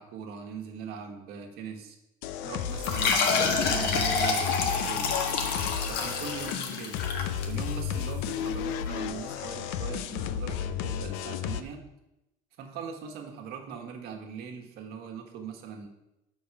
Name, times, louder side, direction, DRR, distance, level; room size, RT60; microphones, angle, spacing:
voice 1, 0.0-1.9 2.4-5.2 5.8-7.0 7.5-11.8 12.6-15.9, right 6 dB, 65° right, 3 dB, 1.5 m, -41 dB
sound 1, 2.2-11.6, left 8 dB, 80° left, 0.6 m, -33 dB
sound 2, 2.8-8.0, left 4 dB, 65° left, 1.3 m, -28 dB
6.4 x 5.3 x 5.9 m, 0.90 s
cardioid pair, 120°, 18 cm